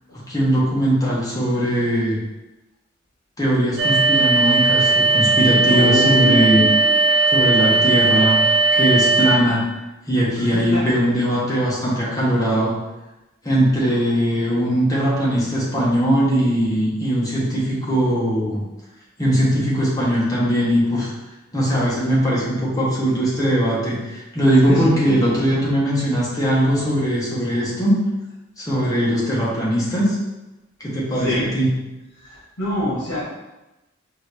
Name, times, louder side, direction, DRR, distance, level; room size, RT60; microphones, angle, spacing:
voice 1, 0.3-2.2 3.4-6.6 7.3-8.4 8.8-9.6 10.1-12.7 13.4-18.6 19.2-21.1 21.5-28.0 28.6-30.2 30.8-31.7, equal, 15° left, -6 dB, 1.0 m, -20 dB
sound 1, 3.8-9.4, right 3 dB, 60° right, 0.8 m, -17 dB
voice 2, 5.6-7.0 7.7-8.1 10.4-10.9 24.6-25.7 31.1-31.5 32.2-33.2, equal, 80° left, -7 dB, 1.1 m, -26 dB
4.8 x 2.7 x 3.3 m, 1.0 s
head